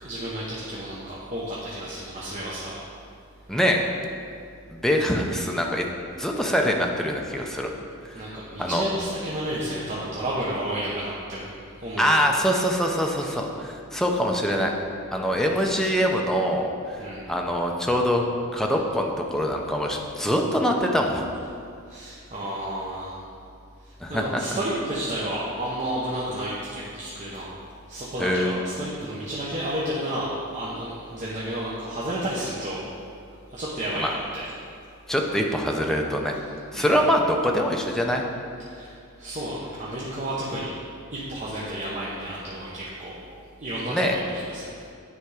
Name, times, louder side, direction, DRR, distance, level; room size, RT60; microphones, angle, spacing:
voice 1, 0.0-2.8 5.5-5.7 7.4-7.6 8.1-11.5 11.8-12.3 17.0-17.3 21.9-23.2 23.8-27.5 27.9-32.8 33.5-34.0 34.3-34.7 36.7-37.0 38.6-40.8 41.1-43.1 43.6-44.8, right 1 dB, 35° right, -7 dB, 0.9 m, -31 dB
voice 2, 3.5-3.8 4.7-5.9 6.1-7.7 8.0-8.2 8.6-8.8 12.0-14.7 15.1-18.2 18.5-21.3 24.0-24.4 28.2-28.6 34.0-34.1 35.1-36.4 36.7-38.3 43.9-44.2, equal, ahead, 1 dB, 0.5 m, -24 dB
9.5 x 3.5 x 4.8 m, 2.4 s
head